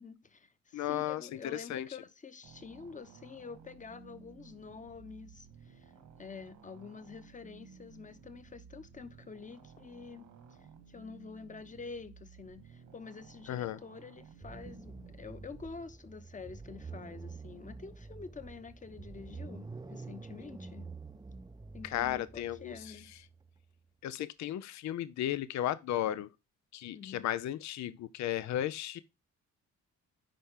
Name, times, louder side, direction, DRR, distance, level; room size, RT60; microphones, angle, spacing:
voice 1, 0.0-5.9 6.2-10.3 10.9-20.9 21.7-23.1 26.9-27.3, left 5 dB, 25° left, 1.0 m, -47 dB
voice 2, 0.7-1.2 1.5-1.9 13.5-13.8 21.8-23.0 24.0-26.3 26.7-29.0, left 12 dB, 65° left, 0.6 m, -34 dB
sound 1, 2.4-15.7, right 6 dB, 80° right, 1.8 m, -56 dB
sound 2, 14.4-23.8, right 4 dB, 15° right, 0.5 m, -48 dB
10.0 x 4.3 x 3.7 m
cardioid pair, 90°, 30 cm